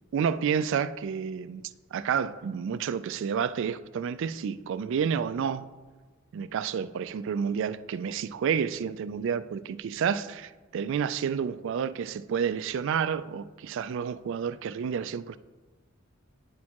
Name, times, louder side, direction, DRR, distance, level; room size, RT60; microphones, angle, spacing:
voice 1, 0.1-1.6 1.9-5.7 6.3-15.4, right 7 dB, 65° right, 0.3 m, -30 dB
9.4 x 6.3 x 2.9 m
head